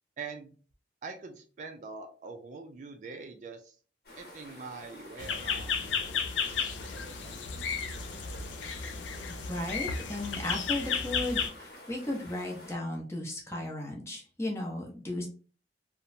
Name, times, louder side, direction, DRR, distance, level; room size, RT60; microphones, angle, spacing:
voice 1, 0.2-0.5 1.0-3.8 4.2-5.8, right 4 dB, 45° right, 4 dB, 0.3 m, -43 dB
sound 1, 4.0-12.7, left 1 dB, 60° left, 0.9 m, -50 dB
sound 2, 5.2-11.5, left 6 dB, 85° left, 0.4 m, -33 dB
voice 2, 9.3-15.3, left 1 dB, 15° left, -1 dB, 0.6 m, -35 dB
2.9 x 2.1 x 2.5 m, 0.38 s
head